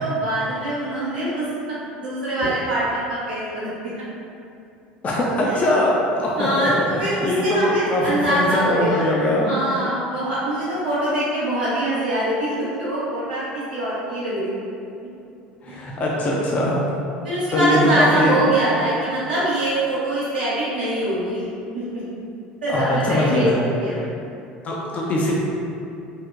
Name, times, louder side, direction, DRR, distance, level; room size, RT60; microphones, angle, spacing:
voice 1, 0.0-3.9 5.4-5.6 6.4-13.4 13.7-14.7 15.7-15.8 17.2-21.5 21.7-22.2 22.6-24.0, right 1 dB, 85° right, -13 dB, 0.5 m, -24 dB
voice 2, 5.0-9.5 15.6-16.8 17.5-18.3 22.7-23.6 24.6-25.3, left 1 dB, 30° left, -4 dB, 0.4 m, -21 dB
2.6 x 2.0 x 2.4 m, 2.6 s
figure-of-eight pair, 70°, 5 cm